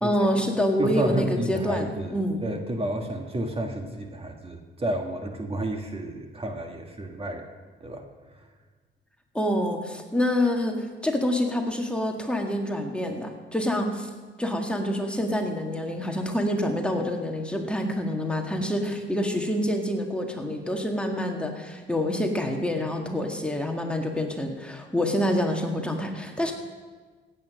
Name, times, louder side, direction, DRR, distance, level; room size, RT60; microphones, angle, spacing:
voice 1, 0.0-2.4 9.3-14.1 14.4-26.5, left 1 dB, 5° left, 1 dB, 1.8 m, -27 dB
voice 2, 0.8-7.4 7.8-8.0 8.4-8.5, right 1 dB, 30° right, 3 dB, 1.7 m, -31 dB
16.5 x 8.9 x 6.4 m, 1.4 s
cardioid pair, 90°, 20 cm